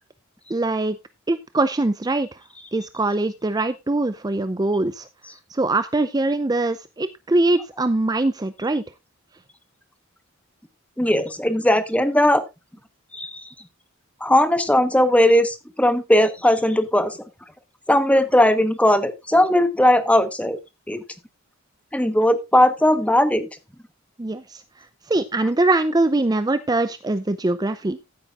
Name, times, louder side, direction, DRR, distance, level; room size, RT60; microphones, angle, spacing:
voice 1, 0.5-1.0 1.3-2.3 2.7-5.1 5.5-8.8 24.2-24.6 25.1-28.0, right 2 dB, 20° right, 13 dB, 0.5 m, -22 dB
voice 2, 11.0-12.4 13.1-13.5 14.2-17.2 17.9-20.6 20.9-21.0 21.9-23.5, left 1 dB, 5° left, 11 dB, 1.1 m, -18 dB
15.0 x 8.9 x 2.5 m, 0.24 s
head